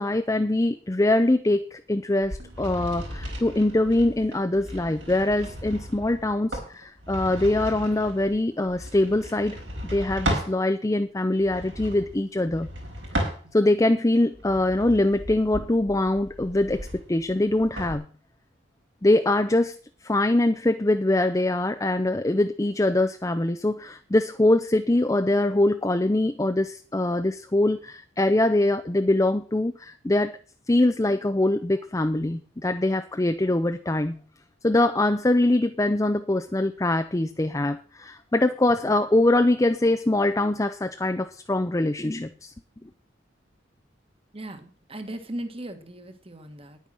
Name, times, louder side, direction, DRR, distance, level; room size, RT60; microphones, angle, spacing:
voice 1, 0.0-9.6 9.9-12.7 13.5-18.1 19.0-19.7 20.0-30.4 30.7-34.2 34.6-42.5, left 1 dB, 15° left, 8 dB, 0.5 m, -23 dB
sound 1, 2.2-10.6 11.4-13.8 14.3-18.0, equal, 80° right, 4.8 m, -35 dB
voice 2, 44.3-46.8, right 1 dB, 30° right, 7 dB, 1.5 m, -37 dB
10.5 x 9.2 x 6.1 m, 0.41 s
head